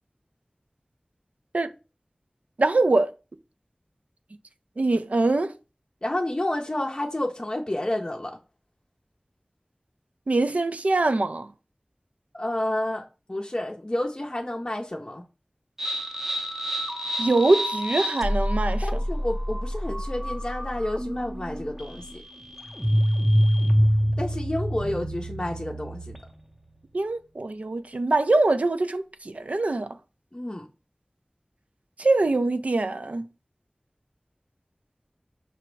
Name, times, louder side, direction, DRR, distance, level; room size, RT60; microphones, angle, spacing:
voice 1, 2.6-3.1 4.8-5.5 10.3-11.5 17.2-18.8 26.9-29.9 32.0-33.2, right 2 dB, 75° right, 0.3 m, -23 dB
voice 2, 6.0-8.4 12.3-15.2 18.8-22.2 24.2-26.2 30.3-30.7, left 1 dB, 35° left, 0.5 m, -30 dB
sound 1, 15.8-26.4, equal, 10° right, 0.6 m, -26 dB
5.6 x 2.0 x 4.5 m
wide cardioid pair, 45°, 2 cm